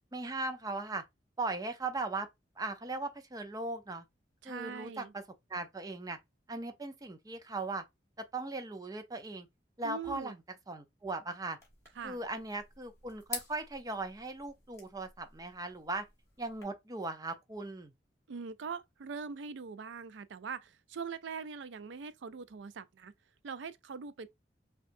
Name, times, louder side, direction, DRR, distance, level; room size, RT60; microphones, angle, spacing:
voice 1, 0.1-1.0 1.4-2.3 2.6-4.0 4.4-5.2 5.5-6.2 6.5-7.8 8.2-9.5 9.8-10.3 10.7-11.6 12.0-16.1 16.4-17.9, right 2 dB, 20° right, 0.6 m, -38 dB
voice 2, 4.4-5.1 9.8-10.4 12.0-12.2 18.3-23.1 23.4-24.3, right 5 dB, 85° right, 0.4 m, -42 dB
sound 1, 11.6-16.6, left 4 dB, 15° left, 1.4 m, -48 dB
5.7 x 2.3 x 2.6 m
head